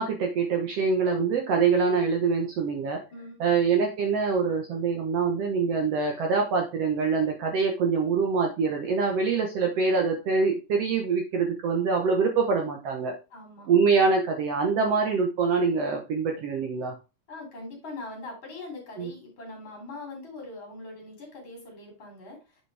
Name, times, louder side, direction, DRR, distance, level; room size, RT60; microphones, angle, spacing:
voice 1, 0.0-3.0 3.4-13.1 13.7-16.9 19.0-19.1, right 5 dB, 65° right, 2 dB, 1.6 m, -25 dB
voice 2, 3.1-3.4 13.3-13.7 17.3-22.6, left 2 dB, 35° left, 1 dB, 3.7 m, -42 dB
8.1 x 5.3 x 3.3 m, 0.29 s
omnidirectional pair, 4.0 m